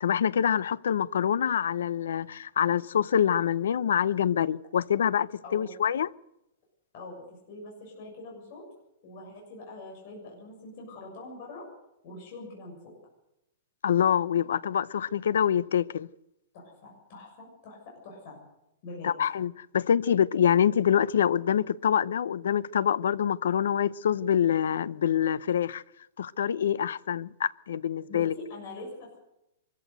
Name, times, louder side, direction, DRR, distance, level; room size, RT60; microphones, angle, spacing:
voice 1, 0.0-6.1 13.8-16.1 19.0-25.8 26.2-28.3, left 9 dB, 85° left, 0.7 m, -25 dB
voice 2, 6.9-8.6 9.0-11.7 12.0-12.9 16.5-18.4 18.8-19.1 28.1-29.2, left 2 dB, 35° left, 7.1 m, -44 dB
24.0 x 14.5 x 8.0 m
hypercardioid pair, 180°, 0 cm